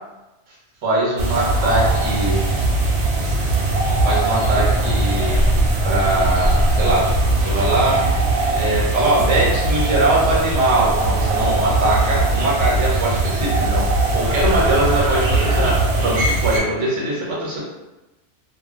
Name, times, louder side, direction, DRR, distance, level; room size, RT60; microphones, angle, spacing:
voice 1, 0.8-2.4 3.9-5.4 5.8-8.0 8.5-15.8 16.0-17.6, right 2 dB, 90° right, -6 dB, 1.1 m, -21 dB
sound 1, 1.2-16.6, right 2 dB, 70° right, 0.8 m, -20 dB
2.6 x 2.2 x 2.4 m, 1.0 s
omnidirectional pair, 1.2 m